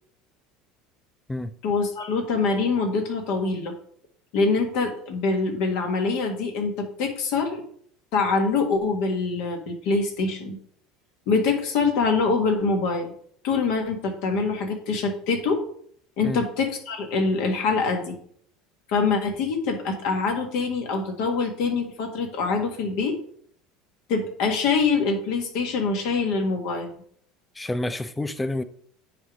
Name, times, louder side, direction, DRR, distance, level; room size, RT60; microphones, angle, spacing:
voice 1, 1.6-3.7 4.3-7.6 8.1-10.6 11.3-13.1 13.4-15.6 16.2-18.2 18.9-23.2 24.1-26.9, left 4 dB, 65° left, 1.6 m, -24 dB
voice 2, 27.6-28.6, left 1 dB, 10° left, 0.6 m, -29 dB
9.6 x 3.5 x 5.1 m
hypercardioid pair, 80°, 0 cm